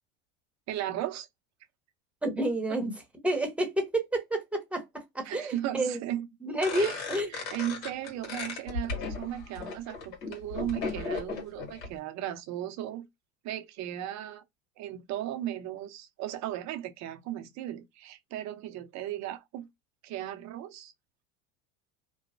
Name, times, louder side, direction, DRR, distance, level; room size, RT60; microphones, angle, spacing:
voice 1, 0.7-1.3 5.2-6.3 6.7-13.1 13.4-14.4 14.8-19.7 20.0-20.9, right 12 dB, 45° right, 0.7 m, -36 dB
voice 2, 2.2-2.9 3.2-6.0 6.4-7.3, right 1 dB, 5° right, 0.9 m, -30 dB
sound 1, 6.6-11.9, left 4 dB, 70° left, 1.7 m, -36 dB
3.0 x 2.2 x 2.5 m
supercardioid pair, 115°, 39 cm